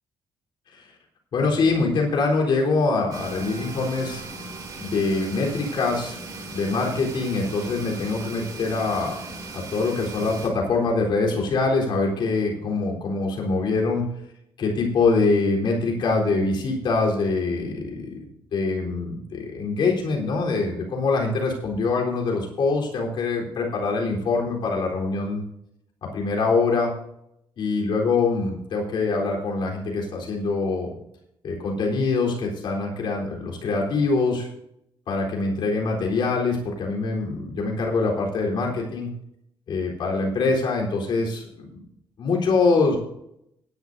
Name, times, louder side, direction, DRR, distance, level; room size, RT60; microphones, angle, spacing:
voice 1, 1.3-4.2 4.8-6.2 6.5-9.2 9.5-14.0 14.6-18.2 18.5-25.4 26.0-26.9 27.6-30.9 31.4-34.5 35.1-39.1 39.7-41.8 42.2-43.0, left 3 dB, 55° left, -1 dB, 3.9 m, -24 dB
sound 1, 3.1-10.5, right 3 dB, 45° right, 2.9 m, -37 dB
17.5 x 11.0 x 2.7 m, 0.76 s
cardioid pair, 175°, 9 cm